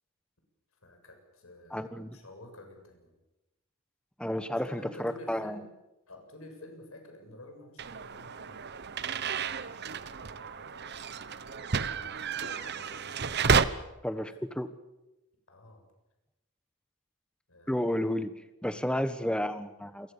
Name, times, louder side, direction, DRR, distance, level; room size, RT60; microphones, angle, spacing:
voice 1, 0.8-3.1 4.3-5.7 6.1-8.6 9.0-13.6 14.1-14.3 15.5-15.9 17.5-17.9, left 1 dB, 80° left, 4 dB, 7.5 m, -51 dB
voice 2, 1.7-2.2 4.2-5.6 14.0-14.7 17.7-18.3 18.6-20.1, left 1 dB, 5° left, 11 dB, 1.4 m, -31 dB
sound 1, 7.8-13.6, right 5 dB, 55° right, 1.0 m, -31 dB
28.5 x 23.0 x 7.1 m, 0.98 s
head